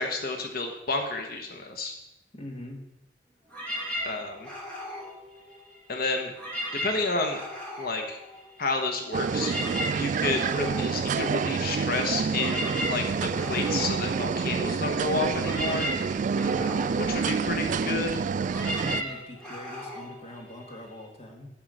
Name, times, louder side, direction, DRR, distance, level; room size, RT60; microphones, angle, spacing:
voice 1, 0.0-1.9 4.0-4.5 5.9-6.3 6.8-7.4 7.8-8.2 8.6-9.5 10.0-15.9 17.0-18.2, left 3 dB, 55° left, 4 dB, 1.1 m, -30 dB
voice 2, 2.3-2.9 16.3-16.8 17.3-17.5 18.6-21.5, left 1 dB, 35° left, 1 dB, 1.8 m, -42 dB
sound 1, 3.5-5.9 6.3-8.8 9.1-21.0, left 1 dB, 5° left, 2.9 m, -37 dB
sound 2, 9.1-19.0, right 5 dB, 45° right, 0.3 m, -28 dB
9.1 x 4.9 x 7.7 m, 0.88 s
head